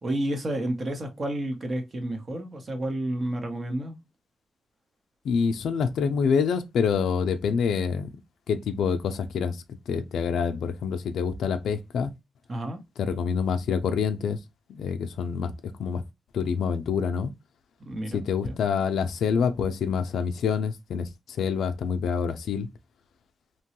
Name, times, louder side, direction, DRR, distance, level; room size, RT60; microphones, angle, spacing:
voice 1, 0.0-4.0 12.5-12.8 17.9-18.6, right 1 dB, 35° right, 0.8 m, -31 dB
voice 2, 5.2-8.1 8.5-9.6 9.9-12.1 13.0-14.4 14.7-15.5 15.8-16.0 16.3-17.3 18.1-21.1 21.4-22.7, left 6 dB, 85° left, 0.4 m, -26 dB
2.9 x 2.2 x 2.8 m
wide cardioid pair, 125°, 0 cm